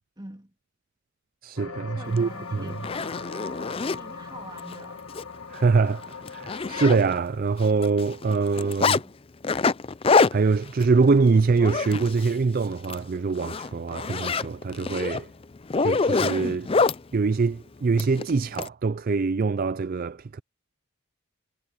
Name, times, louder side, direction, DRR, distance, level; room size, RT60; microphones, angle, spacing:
voice 1, 0.2-0.5 1.9-3.0 3.9-5.1 9.0-9.2, right 1 dB, 20° right, 2.5 m, -45 dB
voice 2, 1.4-2.7 5.5-9.0 10.3-15.3 15.8-16.9 17.1-20.4, right 4 dB, 40° right, 0.4 m, -24 dB
sound 1, 1.6-7.0, left 5 dB, 75° left, 1.9 m, -39 dB
Zipper (clothing), 2.2-2.3 2.7-4.0 4.6-4.7 5.1-5.2 5.6-5.7 6.0-7.4 7.6-9.0 9.4-12.4 12.7-13.0 13.4-17.0 18.0-18.7, left 4 dB, 25° left, 0.4 m, -25 dB
head